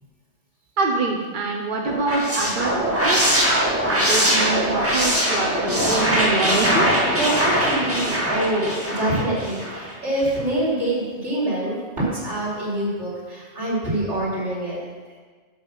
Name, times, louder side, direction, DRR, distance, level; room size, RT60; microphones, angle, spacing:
voice 1, 0.8-3.4 3.8-6.9, right 3 dB, 50° right, 1 dB, 1.1 m, -25 dB
sound 1, 1.9-9.9, equal, 10° right, 2.1 m, -21 dB
voice 2, 7.2-14.8, right 1 dB, 80° right, -6 dB, 4.3 m, -25 dB
11.5 x 7.3 x 6.1 m, 1.5 s
omnidirectional pair, 1.2 m